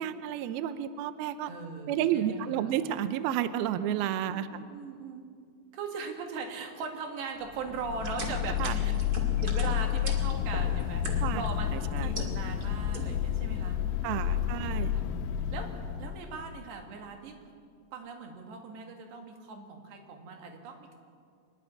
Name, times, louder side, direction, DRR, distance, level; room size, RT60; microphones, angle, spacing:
voice 1, 0.0-1.5 1.9-4.5 8.6-8.7 11.2-11.4 11.7-12.1 14.0-14.9, right 11 dB, 90° right, 12 dB, 2.1 m, -31 dB
voice 2, 1.5-2.8 4.3-5.2 5.7-8.9 9.4-14.3 14.8-15.0 15.4-15.7 16.0-17.4 17.9-21.0, right 4 dB, 70° right, 3 dB, 3.9 m, -40 dB
sound 1, 7.6-16.9, left 11 dB, 85° left, 3.2 m, -31 dB
sound 2, 8.0-11.5 11.9-12.6 12.9-13.3, right 2 dB, 40° right, 1.3 m, -39 dB
24.5 x 11.0 x 10.0 m, 2.2 s
omnidirectional pair, 5.3 m